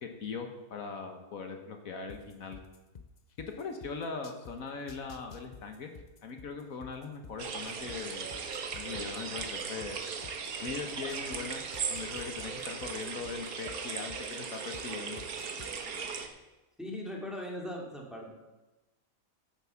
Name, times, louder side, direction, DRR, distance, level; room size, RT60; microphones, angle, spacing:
voice 1, 0.0-2.6 3.5-5.9 6.2-8.3 8.7-10.0 10.6-11.6 11.9-15.2, left 5 dB, 70° left, 5 dB, 1.5 m, -40 dB
sound 1, 2.1-4.5 4.9-8.0 8.3-11.4 11.7-14.8 15.2-15.7, left 6 dB, 45° left, 0.6 m, -49 dB
sound 2, 7.4-16.3, right 6 dB, 85° right, 1.6 m, -38 dB
voice 2, 16.8-18.3, left 1 dB, ahead, -1 dB, 2.4 m, -39 dB
9.4 x 7.8 x 7.0 m, 1.1 s
omnidirectional pair, 1.5 m